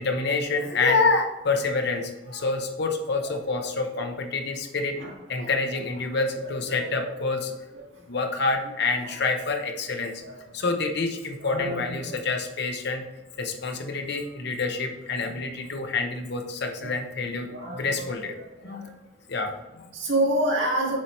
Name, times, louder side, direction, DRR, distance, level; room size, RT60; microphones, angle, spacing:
voice 1, 0.0-5.0 5.3-7.5 8.1-10.1 10.5-13.0 13.4-18.3 18.6-18.8 19.3-19.9, left 3 dB, 60° left, 4 dB, 0.9 m, -27 dB
voice 2, 5.0-5.5 6.4-7.1 7.8-7.9 9.0-9.1 10.2-10.3 11.4-12.2 16.8-16.9 17.5-18.8 19.9-21.0, right 1 dB, 80° right, -2 dB, 2.2 m, -29 dB
7.4 x 4.6 x 4.4 m, 1.1 s
head